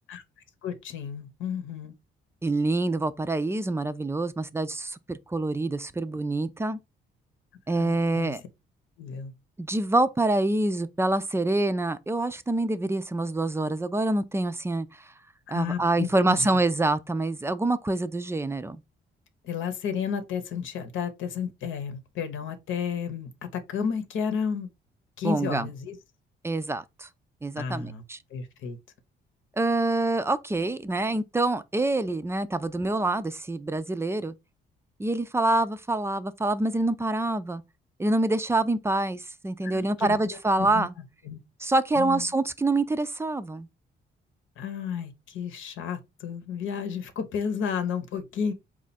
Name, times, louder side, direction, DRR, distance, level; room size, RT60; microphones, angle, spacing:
voice 1, 0.6-1.9 7.8-8.3 9.0-9.3 15.5-16.6 19.4-24.7 25.2-26.0 27.6-28.0 28.3-28.8 39.6-40.9 41.2-41.4 42.0-42.3 44.6-48.5, left 7 dB, 75° left, 0.9 m, -32 dB
voice 2, 2.4-6.8 7.7-8.4 9.6-15.1 15.5-18.8 25.2-25.7 26.4-27.1 27.4-28.2 29.6-34.3 35.0-37.6 38.0-40.9 41.6-43.7, right 2 dB, 15° right, 0.4 m, -26 dB
4.3 x 2.5 x 4.1 m
cardioid pair, 90°, 20 cm